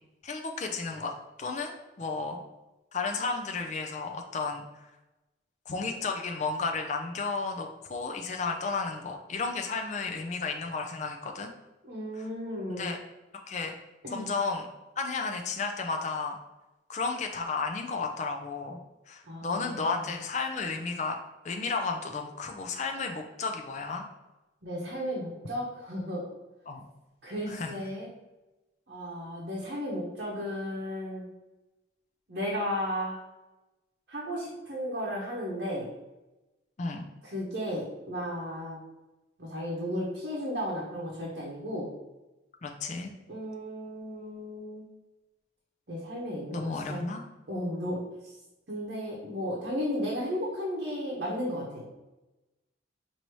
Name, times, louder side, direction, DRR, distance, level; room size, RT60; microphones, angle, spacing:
voice 1, 0.2-1.1 1.4-2.4 2.9-4.6 5.7-11.5 12.7-13.0 13.5-13.7 14.1-14.7 15.0-16.4 16.9-18.8 19.1-21.2 21.4-24.0 26.7-26.8 27.5-27.8 36.8-37.1 42.6-43.1 46.5-47.2, left 4 dB, 35° left, 3 dB, 0.4 m, -33 dB
voice 2, 11.8-12.9 14.0-14.3 19.3-20.0 24.6-26.2 27.2-28.1 28.9-31.3 32.3-33.2 34.1-35.9 37.2-38.8 39.4-41.9 43.3-44.9 45.9-47.0 47.5-48.0 48.7-51.9, equal, 55° right, -5 dB, 0.8 m, -34 dB
4.6 x 2.7 x 3.1 m, 1.0 s
head